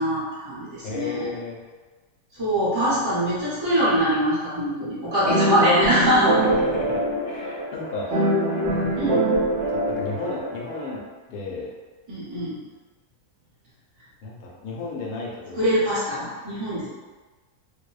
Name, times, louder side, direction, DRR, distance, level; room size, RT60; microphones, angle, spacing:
voice 1, 0.0-1.3 2.3-6.5 8.9-9.3 12.1-12.6 15.5-16.9, equal, 25° right, -12 dB, 0.6 m, -23 dB
voice 2, 0.8-1.6 5.0-5.4 6.4-8.1 8.7-9.2 9.7-11.0 11.3-11.7 14.2-15.7, left 3 dB, 80° left, -2 dB, 1.1 m, -33 dB
sound 1, 5.3-10.9, right 1 dB, 60° right, 0.8 m, -24 dB
2.6 x 2.0 x 2.3 m, 1.3 s
omnidirectional pair, 1.6 m